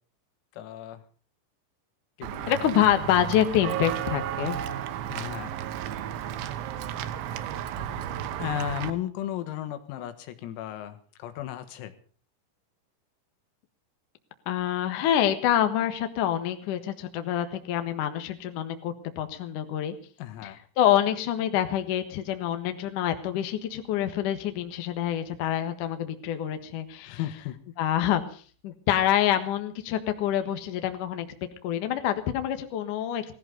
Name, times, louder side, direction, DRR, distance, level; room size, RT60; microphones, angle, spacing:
voice 1, 0.5-1.0 2.2-2.5 5.1-5.6 6.6-6.7 7.8-8.0 8.4-12.0 20.2-20.6 27.0-27.6, left 12 dB, 90° left, 9 dB, 4.3 m, -35 dB
Walk footsteps / Bell, 2.2-8.9, right 10 dB, 75° right, 3.0 m, -33 dB
voice 2, 2.5-4.6 14.5-19.9 20.4-20.5 20.8-27.2 27.8-31.3 31.6-33.2, left 11 dB, 70° left, 8 dB, 2.0 m, -26 dB
18.5 x 14.0 x 5.3 m, 0.42 s
omnidirectional pair, 6.0 m